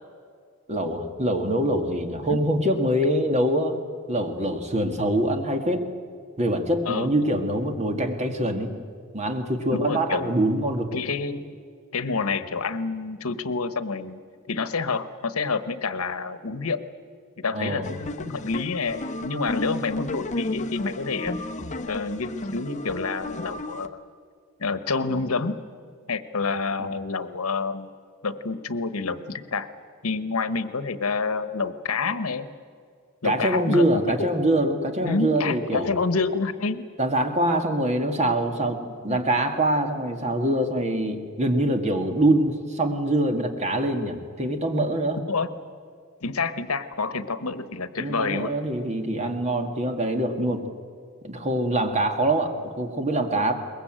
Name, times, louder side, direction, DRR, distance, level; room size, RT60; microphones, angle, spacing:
voice 1, 0.7-3.8 4.1-5.8 6.4-8.7 9.1-10.9 17.5-18.0 33.2-35.9 37.0-45.2 48.0-50.6 51.2-53.5, right 1 dB, 30° right, 5 dB, 2.0 m, -24 dB
voice 2, 6.8-7.4 9.7-10.3 10.9-11.6 11.9-14.2 14.5-16.8 17.4-21.4 21.9-24.0 24.6-25.6 26.1-27.9 28.2-29.7 30.0-32.5 33.2-34.3 35.0-36.9 39.1-39.2 45.3-45.5 46.2-48.5, left 4 dB, 90° left, 13 dB, 1.2 m, -28 dB
sound 1, 17.8-23.9, left 1 dB, 35° left, 1.0 m, -33 dB
22.0 x 21.0 x 9.0 m, 2.2 s
head